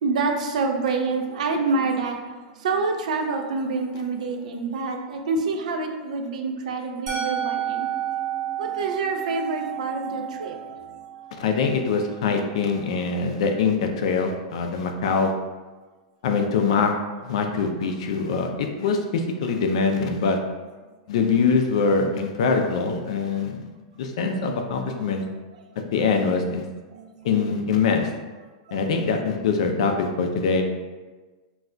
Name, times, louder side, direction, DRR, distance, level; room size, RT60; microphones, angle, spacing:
voice 1, 0.0-8.0 8.6-10.9 24.9-25.1 26.9-27.3 28.7-28.9, right 4 dB, 85° right, 4 dB, 0.4 m, -27 dB
Musical instrument, 7.1-13.0, right 10 dB, 55° right, 0.9 m, -31 dB
voice 2, 11.4-15.3 16.2-16.9 17.2-20.4 21.1-23.6 24.0-25.2 25.9-26.7 27.2-28.1 28.7-30.6, left 5 dB, 60° left, 4 dB, 0.3 m, -23 dB
2.3 x 2.1 x 3.7 m, 1.3 s
supercardioid pair, 180°, 4 cm